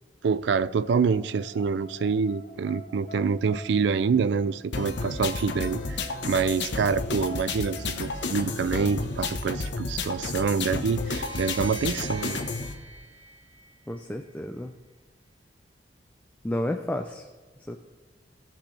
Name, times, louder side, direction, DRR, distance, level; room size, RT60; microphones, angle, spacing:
voice 1, 0.2-12.4, right 5 dB, 70° right, 0.4 m, -26 dB
sound 1, 0.6-8.4, left 2 dB, 25° left, 2.2 m, -46 dB
sound 2, 4.7-12.7, left 3 dB, 70° left, 1.0 m, -32 dB
sound 3, 11.0-14.3, right 3 dB, 85° right, 1.3 m, -43 dB
voice 2, 13.9-14.7 16.4-17.3 17.7-17.8, left 1 dB, 10° left, 0.4 m, -31 dB
17.0 x 6.1 x 3.3 m
head